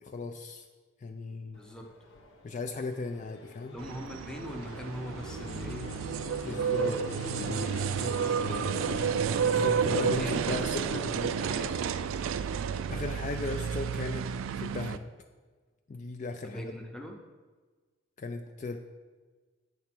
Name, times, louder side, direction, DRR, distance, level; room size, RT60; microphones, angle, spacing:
voice 1, 0.0-0.6 1.0-1.6 2.4-3.8 6.4-7.0 9.4-11.4 12.9-14.3 14.5-15.1 15.9-16.6 18.2-18.8, left 3 dB, 40° left, 5 dB, 0.3 m, -36 dB
Fixed-wing aircraft airplane, 1.5-11.8, left 2 dB, 85° left, 1.0 m, -43 dB
voice 2, 1.5-1.9 3.7-5.9 6.4-8.7 9.9-11.9 16.4-17.2, equal, 5° left, 2 dB, 0.7 m, -42 dB
sound 1, 3.8-15.0, right 7 dB, 85° right, 0.3 m, -31 dB
8.4 x 3.4 x 6.0 m, 1.4 s
head